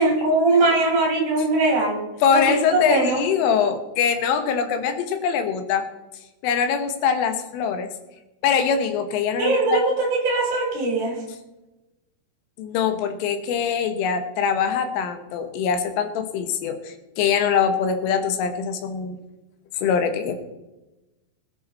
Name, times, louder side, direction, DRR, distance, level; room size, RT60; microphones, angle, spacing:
voice 1, 0.0-2.0 2.3-3.2 9.4-11.2, right 2 dB, 40° right, 0 dB, 4.9 m, -21 dB
voice 2, 2.2-5.9 6.4-7.9 8.4-9.8 12.6-19.2 19.8-20.4, left 7 dB, 80° left, 7 dB, 3.8 m, -23 dB
21.0 x 10.0 x 4.2 m, 1.0 s
omnidirectional pair, 5.8 m